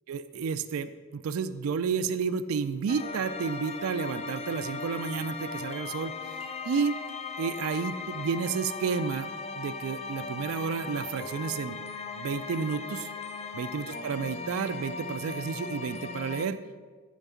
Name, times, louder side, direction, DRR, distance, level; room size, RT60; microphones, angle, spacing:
voice 1, 0.1-7.0 7.4-9.3 9.6-11.8 12.1-13.1 13.5-16.6, right 6 dB, 80° right, 12 dB, 0.4 m, -31 dB
sound 1, 2.9-16.5, left 4 dB, 30° left, 0.4 m, -38 dB
7.1 x 5.2 x 6.9 m, 1.5 s
head